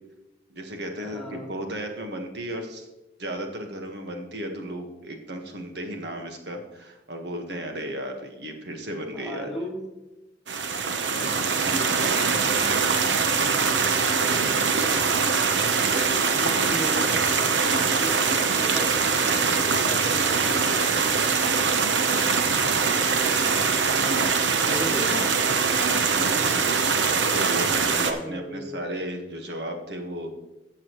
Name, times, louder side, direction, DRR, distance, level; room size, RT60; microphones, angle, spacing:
voice 1, 0.5-2.9 3.2-9.5 11.1-12.9 16.3-16.8 25.9-30.4, right 1 dB, 65° right, 4 dB, 1.4 m, -35 dB
voice 2, 1.0-1.5 9.1-9.8 14.3-14.9 16.3-18.9 19.7-22.2 23.9-25.2 28.1-28.8, equal, ahead, -4 dB, 2.8 m, -37 dB
sound 1, 10.5-28.1, right 5 dB, 80° right, 0.9 m, -23 dB
14.0 x 7.5 x 3.1 m, 1.0 s
head